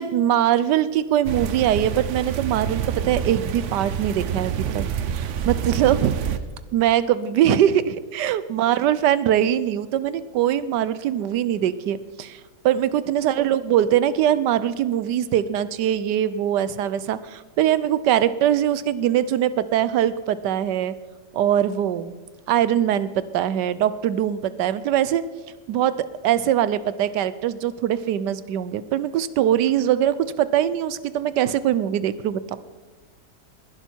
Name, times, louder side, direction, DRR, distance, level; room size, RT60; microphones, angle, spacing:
voice 1, 0.0-6.2 6.7-12.4 12.6-20.9 21.3-22.1 22.5-25.3 25.7-25.9 26.2-32.6, right 11 dB, 85° right, 15 dB, 1.3 m, -22 dB
sound 1, 1.2-6.4, right 8 dB, 60° right, 0.8 m, -27 dB
20.5 x 11.5 x 4.5 m, 1.3 s
omnidirectional pair, 1.8 m